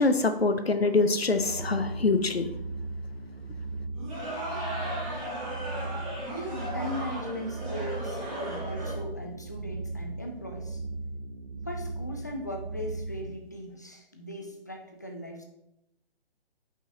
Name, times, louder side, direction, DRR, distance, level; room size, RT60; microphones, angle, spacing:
voice 1, 0.0-2.5, left 3 dB, 80° left, 0.8 m, -24 dB
sound 1, 1.2-13.4, right 2 dB, 80° right, 1.0 m, -37 dB
sound 2, 3.9-8.9, right 1 dB, 35° right, 2.5 m, -36 dB
voice 2, 6.3-10.8 11.5-15.4, equal, 20° left, 0.4 m, -39 dB
7.1 x 5.4 x 2.8 m
figure-of-eight pair, 135°, 30 cm